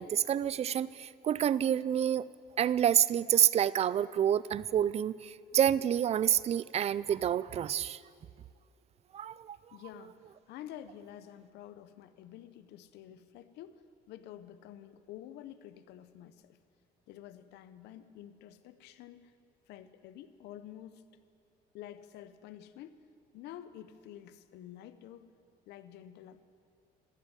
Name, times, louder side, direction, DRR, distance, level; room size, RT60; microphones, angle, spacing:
voice 1, 0.0-2.3 2.6-8.0 9.1-9.6, right 10 dB, 40° right, 19 dB, 0.4 m, -28 dB
voice 2, 9.7-10.2 10.5-13.8 14.1-16.6 17.1-19.3 19.7-21.1 21.7-23.0 23.3-25.3 25.7-26.4, left 11 dB, 85° left, 13 dB, 0.7 m, -49 dB
15.0 x 7.0 x 9.8 m, 2.4 s
cardioid pair, 110°, 17 cm